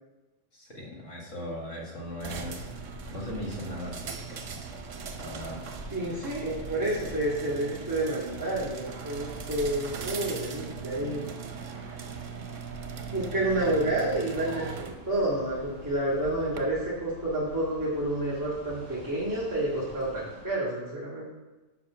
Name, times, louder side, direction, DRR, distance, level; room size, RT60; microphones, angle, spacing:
voice 1, 0.5-2.7 3.1-4.4 5.2-5.6, left 1 dB, 75° left, -2 dB, 2.1 m, -38 dB
sound 1, 2.0-20.5, equal, 30° left, 2.9 m, -47 dB
sound 2, 2.2-16.6, right 6 dB, 80° right, 1.2 m, -40 dB
voice 2, 5.9-11.2 12.3-12.5 13.1-21.3, right 1 dB, 15° right, -9 dB, 1.8 m, -29 dB
7.6 x 5.3 x 5.9 m, 1.1 s
omnidirectional pair, 1.3 m